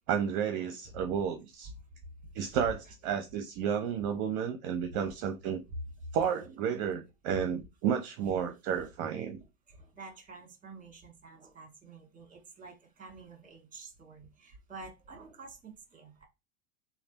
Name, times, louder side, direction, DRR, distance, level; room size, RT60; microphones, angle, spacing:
voice 1, 0.1-1.7 2.3-5.6 6.1-9.4, right 8 dB, 45° right, 0.6 m, -32 dB
voice 2, 9.7-16.2, right 3 dB, 20° right, 1.5 m, -49 dB
3.3 x 2.4 x 3.9 m
hypercardioid pair, 100°, 44 cm